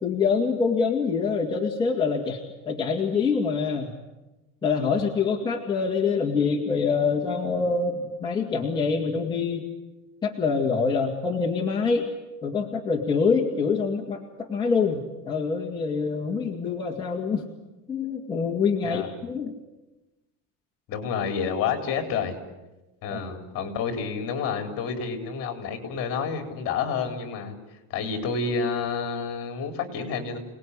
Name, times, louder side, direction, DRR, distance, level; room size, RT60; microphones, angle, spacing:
voice 1, 0.0-2.4 2.7-3.9 4.6-9.6 10.2-12.1 12.4-17.5 17.9-19.5 23.1-23.2, left 5 dB, 15° left, -4 dB, 2.3 m, -25 dB
voice 2, 20.9-22.4 23.0-27.5 27.9-30.4, left 5 dB, 40° left, 5 dB, 4.2 m, -29 dB
28.0 x 19.5 x 10.0 m, 1.1 s
cardioid pair, 175°, 35 cm